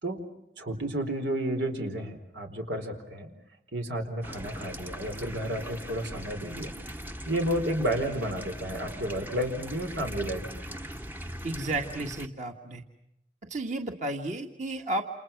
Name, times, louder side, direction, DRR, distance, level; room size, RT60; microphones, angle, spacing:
voice 1, 0.6-3.3 3.7-6.7 7.2-10.7, right 1 dB, 85° right, 5 dB, 4.6 m, -31 dB
sound 1, 4.2-12.3, equal, 10° right, 0.9 m, -40 dB
voice 2, 11.4-12.8 13.5-15.0, right 2 dB, 40° right, 3 dB, 1.9 m, -32 dB
29.5 x 28.5 x 6.1 m, 0.82 s
head